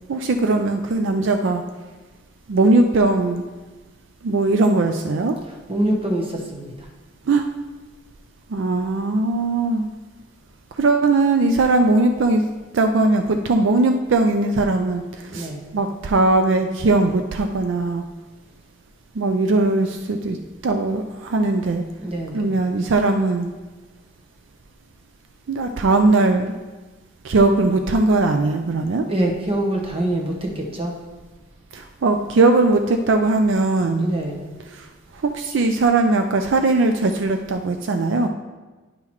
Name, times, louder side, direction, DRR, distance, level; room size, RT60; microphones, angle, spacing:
voice 1, 0.1-1.6 2.5-3.4 4.2-5.4 7.3-7.5 8.5-9.9 10.8-12.4 12.7-18.1 19.2-20.4 20.6-21.8 22.3-23.5 25.5-26.5 27.2-29.1 31.7-34.1 34.7-34.9 35.1-38.3, right 2 dB, 65° right, 6 dB, 0.4 m, -19 dB
voice 2, 5.5-6.7 15.3-15.6 22.0-22.6 29.1-30.9 33.9-34.4, right 1 dB, 30° right, 1 dB, 1.0 m, -25 dB
10.0 x 5.6 x 3.1 m, 1.2 s
head